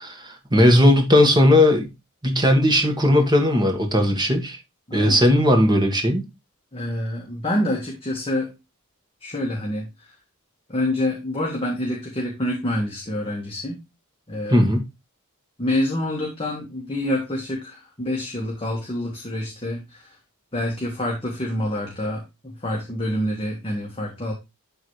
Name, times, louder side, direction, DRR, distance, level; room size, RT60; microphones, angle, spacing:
voice 1, 0.0-1.9 2.2-4.6 4.9-6.2 14.5-14.8, left 1 dB, 20° right, 1.7 m, -17 dB
voice 2, 4.9-5.2 6.7-8.5 9.2-10.1 10.7-13.8 14.3-14.6 15.6-20.2 20.5-24.3, left 1 dB, 25° left, 1.7 m, -27 dB
12.0 x 3.9 x 3.2 m
head